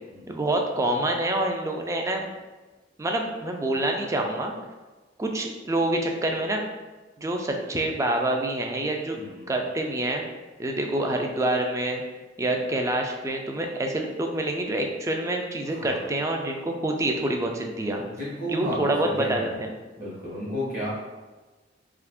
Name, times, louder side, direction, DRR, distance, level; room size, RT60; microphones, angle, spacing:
voice 1, 0.3-2.3 3.0-4.5 5.2-6.6 7.2-9.2 9.5-10.2 10.6-12.0 12.4-18.0 18.5-19.7, right 1 dB, 15° right, 3 dB, 0.3 m, -26 dB
voice 2, 9.1-9.5 15.7-16.0 17.8-19.6 20.0-20.9, equal, 50° right, -6 dB, 1.0 m, -33 dB
2.7 x 2.4 x 3.4 m, 1.2 s
head